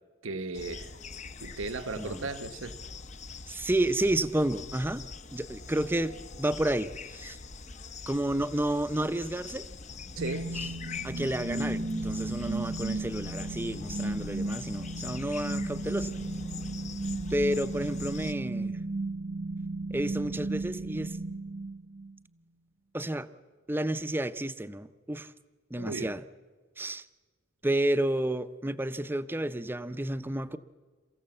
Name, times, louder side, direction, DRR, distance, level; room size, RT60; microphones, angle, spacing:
voice 1, 0.2-0.9 1.4-2.8 10.2-10.5 25.8-26.2, right 3 dB, 70° right, 1.0 m, -36 dB
sound 1, 0.5-18.3, left 4 dB, 35° left, 0.7 m, -43 dB
voice 2, 3.5-5.0 5.3-7.4 8.1-9.7 11.0-16.1 17.3-18.8 19.9-21.2 22.9-23.3 23.7-25.3 25.7-26.2 26.8-27.1 27.6-30.6, right 1 dB, 10° right, 0.6 m, -31 dB
sound 2, 10.2-22.2, right 2 dB, 45° right, 0.7 m, -35 dB
28.0 x 15.0 x 7.9 m
head